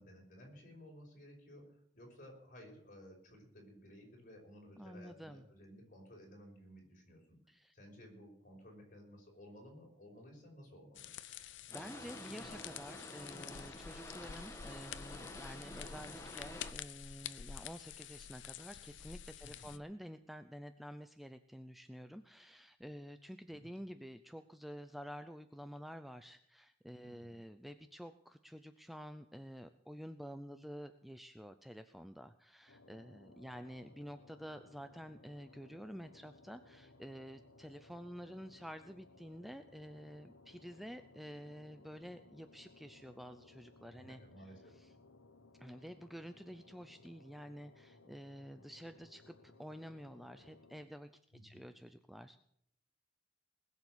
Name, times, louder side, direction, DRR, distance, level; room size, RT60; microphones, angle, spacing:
voice 1, 0.0-7.4 7.7-11.1 19.4-19.7 23.5-23.7 27.0-27.3 33.5-33.6 43.9-44.8 51.3-51.6, equal, 45° left, 1 dB, 5.6 m, -56 dB
voice 2, 4.8-5.4 7.5-7.7 11.2-44.2 44.7-44.9 45.6-51.1 51.4-52.4, equal, ahead, 9 dB, 0.5 m, -50 dB
sound 1, 10.9-19.8, left 9 dB, 70° left, 0.6 m, -49 dB
Boat Water vehicle, 11.7-16.7, left 1 dB, 15° left, 1.7 m, -50 dB
sound 2, 32.7-50.9, left 3 dB, 90° left, 1.2 m, -62 dB
20.5 x 7.2 x 8.0 m, 0.70 s
head